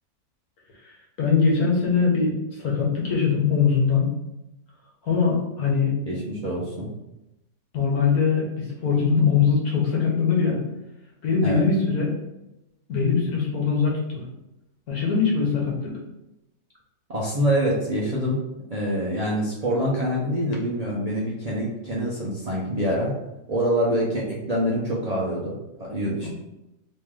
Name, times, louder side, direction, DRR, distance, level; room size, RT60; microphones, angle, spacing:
voice 1, 1.2-4.1 5.0-5.9 7.7-10.6 11.2-12.2 12.9-14.2 14.9-15.9, left 5 dB, 80° left, -3 dB, 1.6 m, -22 dB
voice 2, 6.1-6.9 11.4-11.6 17.1-18.4 18.7-23.1 23.5-26.3, equal, 45° right, -6 dB, 0.5 m, -25 dB
3.1 x 3.1 x 3.6 m, 0.92 s
omnidirectional pair, 1.6 m